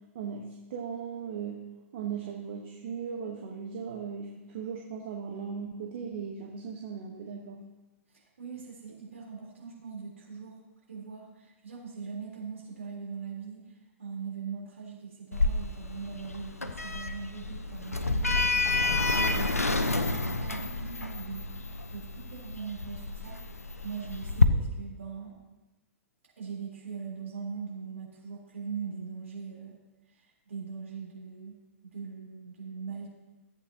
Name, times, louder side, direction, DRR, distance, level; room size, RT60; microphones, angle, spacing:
voice 1, 0.1-1.6 1.9-7.6, right 6 dB, 50° right, 0 dB, 1.2 m, -38 dB
voice 2, 8.1-10.6 10.9-18.4 18.9-23.4 23.8-25.4 26.4-29.8 30.1-31.6 31.8-33.1, right 6 dB, 65° right, -3 dB, 3.8 m, -41 dB
Sliding door, 15.3-24.4, left 3 dB, 85° left, 0.7 m, -29 dB
15.0 x 8.1 x 2.9 m, 1.1 s
figure-of-eight pair, 110°, 8 cm